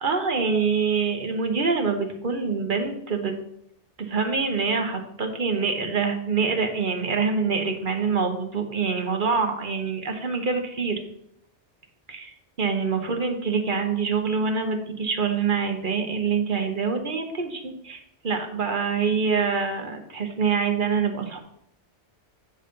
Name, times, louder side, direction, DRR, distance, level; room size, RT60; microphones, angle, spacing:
voice 1, 0.0-3.3 4.0-11.0 12.1-21.4, right 5 dB, 45° right, 4 dB, 1.1 m, -25 dB
8.9 x 4.1 x 5.2 m, 0.73 s
omnidirectional pair, 1.2 m